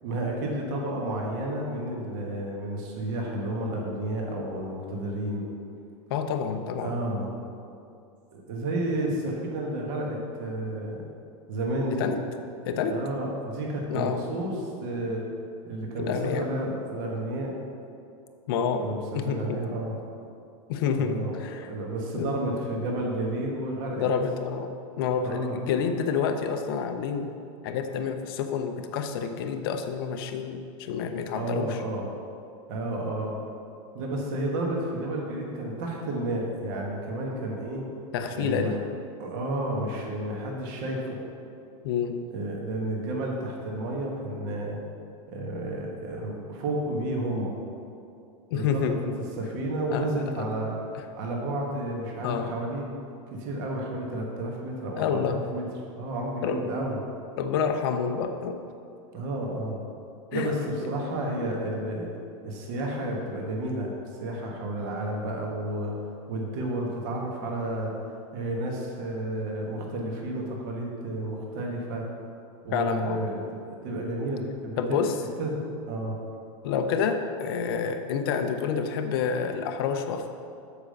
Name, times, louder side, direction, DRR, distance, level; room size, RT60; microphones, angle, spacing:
voice 1, 0.0-5.4 6.8-7.3 8.3-11.0 11.5-12.1 12.9-14.5 14.8-15.2 15.6-17.6 18.8-20.0 21.0-24.1 25.2-25.6 31.3-32.1 32.7-33.4 33.9-37.8 38.3-38.7 39.2-41.2 42.3-44.8 45.3-47.6 48.5-49.1 49.4-50.8 51.2-52.9 53.4-55.6 56.0-57.0 59.1-59.8 60.3-62.1 62.4-63.9 64.2-65.9 66.3-67.9 68.3-72.0 72.6-74.8 75.4-75.6 75.9-76.2, right 1 dB, 40° right, -1 dB, 1.3 m, -31 dB
voice 2, 6.1-7.0 11.9-12.2 12.7-13.0 13.9-14.2 16.0-16.5 18.5-18.9 19.1-19.6 20.7-21.7 22.1-22.5 23.9-24.7 25.0-27.3 27.6-31.8 38.1-38.8 41.8-42.3 48.5-49.0 49.9-50.2 50.9-51.0 52.2-52.5 55.0-55.4 56.4-56.6 57.4-58.6 60.3-60.5 72.7-73.2 74.8-75.2 76.6-80.3, left 6 dB, 45° left, 6 dB, 0.6 m, -28 dB
7.4 x 5.1 x 6.4 m, 2.5 s
supercardioid pair, 175°, 16 cm